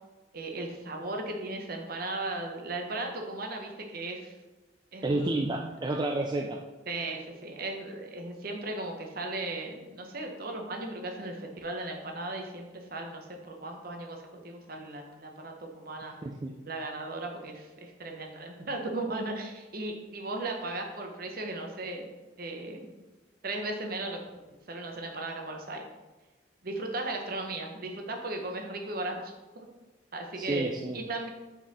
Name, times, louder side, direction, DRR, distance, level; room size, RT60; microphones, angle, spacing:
voice 1, 0.3-4.4 4.9-5.4 5.9-6.0 6.9-16.1 16.7-22.1 22.4-22.9 23.4-24.2 24.7-25.9 26.6-29.7 30.1-31.3, right 2 dB, 50° right, 2 dB, 0.9 m, -36 dB
voice 2, 5.0-6.6 16.2-16.5 30.4-31.0, right 2 dB, 20° right, 1 dB, 0.3 m, -30 dB
6.1 x 4.1 x 4.1 m, 1.2 s
head